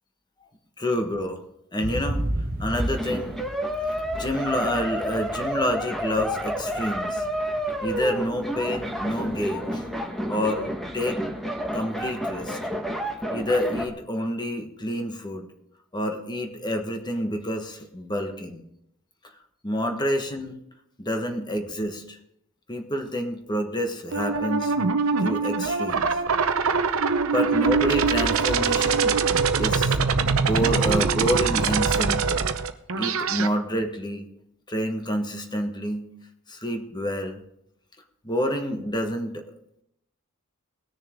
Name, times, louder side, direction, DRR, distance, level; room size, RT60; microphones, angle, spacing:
voice 1, 0.8-1.4 1.7-2.3 2.6-3.4 4.2-7.3 7.8-9.9 10.3-10.7 10.9-11.2 11.7-12.6 13.3-15.5 15.9-18.6 19.6-20.6 21.0-22.2 22.7-24.7 25.2-26.2 27.3-29.2 29.6-32.5 32.9-34.2 34.7-36.1 36.5-37.4 38.2-39.4, equal, 20° left, 5 dB, 1.3 m, -28 dB
sound 1, 1.8-9.7, right 1 dB, 45° right, 1.4 m, -34 dB
sound 2, 2.7-13.9, equal, ahead, 1.4 m, -30 dB
sound 3, 24.1-33.5, right 5 dB, 75° right, 0.8 m, -23 dB
20.0 x 6.7 x 3.6 m, 0.76 s
head